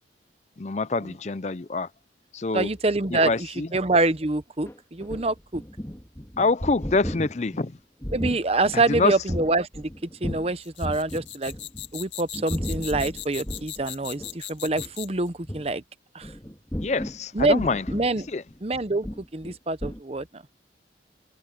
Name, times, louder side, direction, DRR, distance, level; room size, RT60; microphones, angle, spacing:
voice 1, 0.6-1.9 2.3-2.7 3.1-3.7 6.4-7.8 8.7-9.1 16.8-17.9 18.3-18.4, left 3 dB, 40° left, 0.5 m, -26 dB
voice 2, 2.5-3.5 3.7-5.6 8.1-9.9 10.2-11.5 11.9-15.8 16.1-16.3 17.3-18.3 18.6-19.1 19.3-20.4, right 2 dB, 35° right, 0.8 m, -25 dB
sound 1, 4.6-10.5 10.8-12.0 12.3-13.9 14.2-14.3 14.7-14.9 15.4-15.7 16.2-19.5 19.8-20.0, equal, 15° left, 1.8 m, -35 dB
sound 2, 10.6-15.3, left 13 dB, 85° left, 2.0 m, -38 dB
head